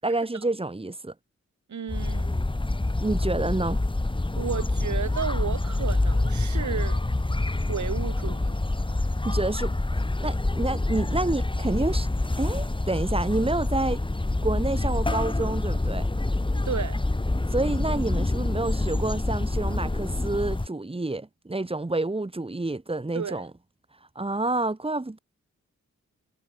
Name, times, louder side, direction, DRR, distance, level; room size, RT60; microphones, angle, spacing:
voice 1, 0.0-1.1 3.0-3.8 9.2-9.7 10.2-12.1 12.4-14.0 14.4-16.1 17.5-23.5 24.2-25.2, right 2 dB, 20° right, 5.2 m, -28 dB
voice 2, 1.7-2.3 4.3-7.0 7.7-8.5 16.6-17.0 23.1-23.4, right 7 dB, 75° right, 7.5 m, -32 dB
sound 1, 1.9-20.7, left 2 dB, 15° left, 3.6 m, -26 dB
wide cardioid pair, 125°, 30 cm